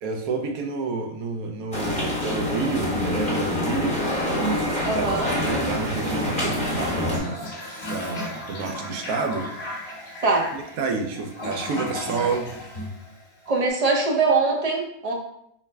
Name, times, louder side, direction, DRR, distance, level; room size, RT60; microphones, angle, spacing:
voice 1, 0.0-4.0 4.6-7.5 7.9-9.5 10.5-12.5, right 4 dB, 75° right, 4 dB, 1.1 m, -29 dB
sound 1, 1.7-7.2, left 1 dB, 5° left, 0.8 m, -26 dB
voice 2, 4.8-5.3 10.2-10.5 13.5-15.1, right 3 dB, 40° right, -1 dB, 0.5 m, -22 dB
Toilet flush, 6.7-13.6, left 1 dB, 35° left, 1.3 m, -35 dB
4.6 x 2.1 x 3.3 m, 0.72 s
omnidirectional pair, 1.6 m